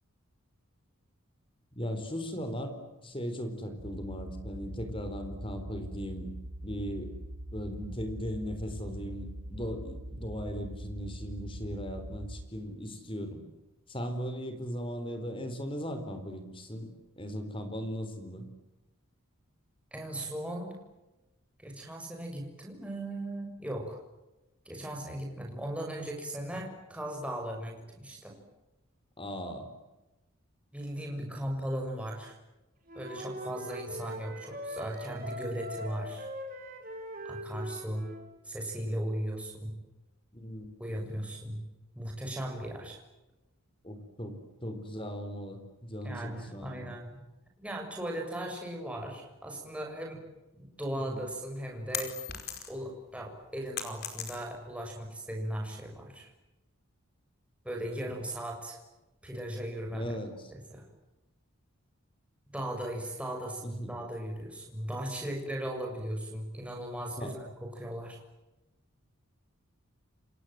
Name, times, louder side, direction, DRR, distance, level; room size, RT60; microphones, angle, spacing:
voice 1, 1.7-6.3 6.6-7.1 7.5-13.4 13.9-16.9 17.2-18.5 26.5-26.6 29.2-29.7 31.2-31.4 40.3-41.0 43.8-46.9 50.9-51.2 59.9-60.5 63.6-64.0 67.2-67.3, equal, 25° left, 8 dB, 4.2 m, -38 dB
sound 1, 3.8-12.5, right 1 dB, 85° right, 5.3 m, -42 dB
voice 2, 19.9-20.8 21.6-24.0 24.7-28.4 30.7-32.4 33.0-36.3 37.2-38.1 38.4-39.7 40.8-41.6 42.0-43.0 46.0-47.1 47.6-50.2 50.5-52.2 52.7-56.3 57.7-58.8 59.2-60.1 60.7-60.9 62.5-67.4 67.6-68.2, right 1 dB, 5° right, 0 dB, 6.9 m, -37 dB
Wind instrument woodwind instrument, 32.9-38.2, equal, 40° right, 6.4 m, -41 dB
sound 2, 51.1-52.9 53.3-54.8, left 8 dB, 45° left, 5.0 m, -38 dB
29.5 x 26.0 x 7.8 m, 1.0 s
head